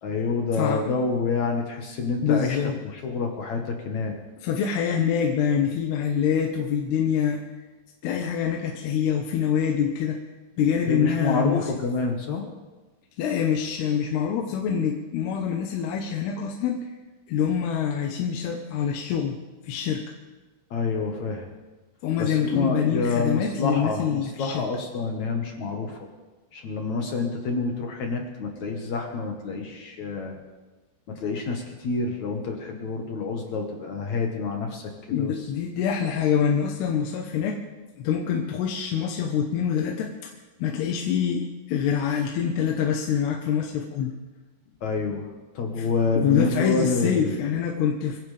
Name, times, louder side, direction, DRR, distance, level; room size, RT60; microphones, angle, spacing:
voice 1, 0.0-2.6 2.9-4.2 10.9-12.5 20.7-21.5 22.2-26.0 26.5-30.4 31.1-34.9 35.2-35.3 44.8-45.3 45.5-47.3, left 4 dB, 60° left, 2 dB, 2.1 m, -27 dB
voice 2, 2.2-2.8 4.4-7.4 8.0-10.2 10.6-11.7 13.2-16.9 17.3-19.4 19.6-20.0 22.0-24.6 35.1-37.6 38.0-40.3 40.6-44.1 45.8-45.9 46.2-48.2, left 8 dB, 75° left, 1 dB, 3.0 m, -25 dB
24.0 x 16.0 x 3.4 m, 1.2 s
omnidirectional pair, 4.9 m